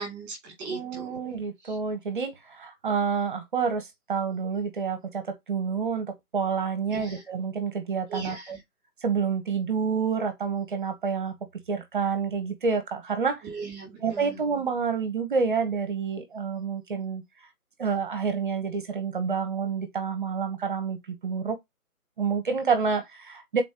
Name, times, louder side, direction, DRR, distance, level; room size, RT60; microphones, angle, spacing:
voice 1, 0.0-1.2 1.6-1.8 6.9-7.2 8.1-8.6 13.4-14.4, right 4 dB, 10° right, 2.4 m, -38 dB
voice 2, 0.7-8.4 9.0-11.3 11.7-13.4 14.0-17.2 17.8-21.6 22.2-23.6, right 5 dB, 35° right, 1.1 m, -28 dB
5.4 x 4.2 x 4.3 m
hypercardioid pair, 160°, 45 cm